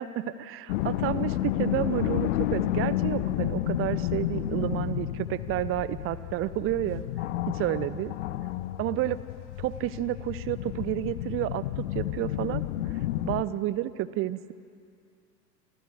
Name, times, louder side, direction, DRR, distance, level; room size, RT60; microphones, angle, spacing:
voice 1, 0.0-7.0 7.5-8.1 8.8-9.2 9.6-12.6 13.2-14.5, right 14 dB, 25° right, 17 dB, 0.8 m, -30 dB
sound 1, 0.7-13.4, left 14 dB, 50° left, 1.0 m, -31 dB
28.0 x 26.0 x 6.6 m, 2.3 s
figure-of-eight pair, 85°, 47 cm